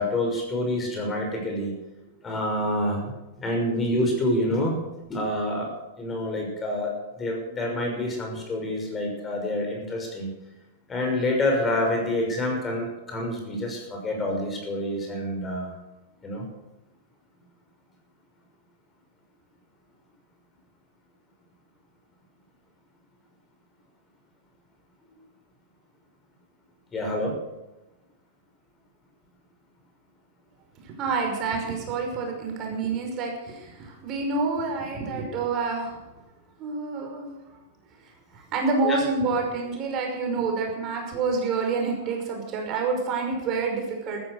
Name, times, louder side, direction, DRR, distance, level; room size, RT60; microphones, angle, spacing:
voice 1, 0.0-1.7 2.2-3.1 3.4-4.7 5.1-5.7 6.0-10.3 10.9-15.7 16.2-16.5 26.9-27.3 38.8-39.0, left 1 dB, 20° left, 1 dB, 6.1 m, -27 dB
voice 2, 30.8-36.0 36.6-37.3 38.3-44.2, right 4 dB, 40° right, 2 dB, 5.7 m, -28 dB
14.5 x 13.5 x 6.7 m, 1.0 s
hypercardioid pair, 105°, 0 cm